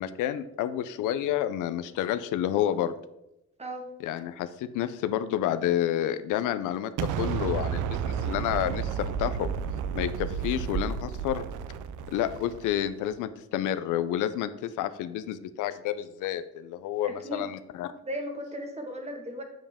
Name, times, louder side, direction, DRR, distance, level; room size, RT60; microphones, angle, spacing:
voice 1, 0.0-2.9 4.0-9.5 9.9-11.4 12.1-17.9, left 11 dB, 90° left, 12 dB, 0.5 m, -29 dB
voice 2, 3.6-3.9 17.0-17.5 18.0-19.4, equal, 20° right, 3 dB, 1.5 m, -36 dB
Explosion, 7.0-13.0, right 7 dB, 80° right, 0.5 m, -32 dB
7.6 x 7.1 x 3.5 m, 0.88 s
cardioid pair, 90°, 30 cm